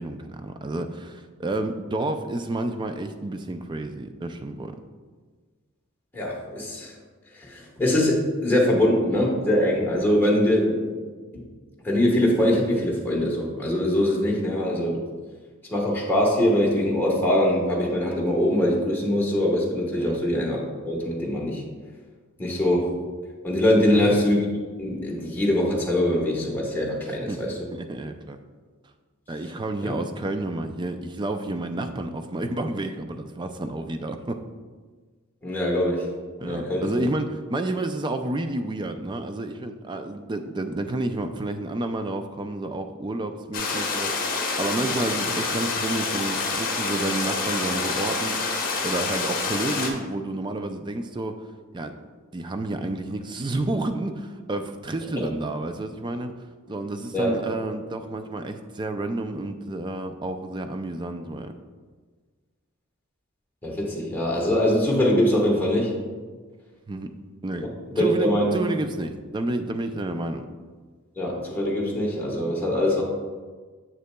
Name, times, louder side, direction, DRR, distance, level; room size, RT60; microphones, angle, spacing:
voice 1, 0.0-4.8 20.0-20.2 23.8-24.2 27.3-27.4 27.7-28.4 29.3-34.4 36.4-48.5 48.8-51.4 51.7-56.3 56.7-61.5 66.9-67.1 67.4-67.7 68.0-70.4, right 2 dB, 20° right, 7 dB, 0.3 m, -30 dB
voice 2, 6.1-6.9 7.4-10.9 11.3-11.4 11.8-15.0 15.7-21.6 22.4-23.0 23.4-24.4 24.8-27.5 29.8-30.0 35.4-36.1 36.4-36.9 57.1-57.4 63.6-65.9 67.6-68.6 71.2-73.0, left 1 dB, 10° left, -4 dB, 1.2 m, -23 dB
sound 1, 43.5-49.9, left 3 dB, 40° left, 0.9 m, -27 dB
7.4 x 6.6 x 2.2 m, 1.5 s
head